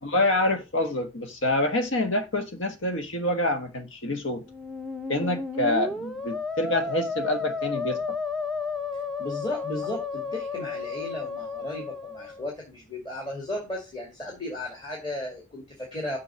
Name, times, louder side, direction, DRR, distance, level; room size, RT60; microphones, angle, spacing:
voice 1, 0.0-4.4 5.1-8.0, left 1 dB, 70° left, 1.3 m, -26 dB
Musical instrument, 4.4-12.5, left 4 dB, ahead, 0.5 m, -32 dB
voice 2, 8.9-16.2, left 1 dB, 25° left, 2.3 m, -35 dB
6.9 x 4.6 x 6.3 m
head